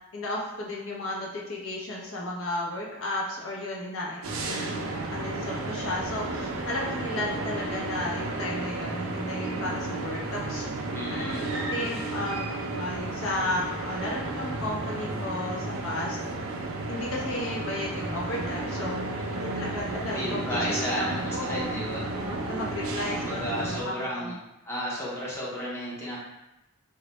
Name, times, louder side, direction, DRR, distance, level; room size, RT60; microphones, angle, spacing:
voice 1, 0.1-4.7 5.1-10.7 11.1-16.2 16.9-21.8 22.1-24.4, left 1 dB, 80° left, -3 dB, 0.6 m, -34 dB
sound 1, 4.2-23.8, right 2 dB, 80° right, 0.3 m, -33 dB
voice 2, 10.9-11.4 20.1-22.0 23.1-24.3 24.6-26.2, equal, 10° left, -7 dB, 0.5 m, -33 dB
2.1 x 2.0 x 2.9 m, 0.94 s
head